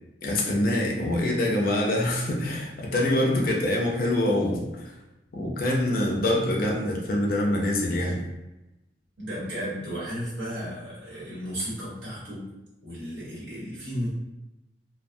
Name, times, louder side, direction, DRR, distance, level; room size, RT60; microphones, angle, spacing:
voice 1, 0.2-4.9 5.3-8.2, left 1 dB, 50° left, -1 dB, 0.5 m, -25 dB
voice 2, 9.2-12.5 12.8-14.1, equal, 70° right, -7 dB, 1.2 m, -34 dB
2.3 x 2.2 x 2.6 m, 0.99 s
head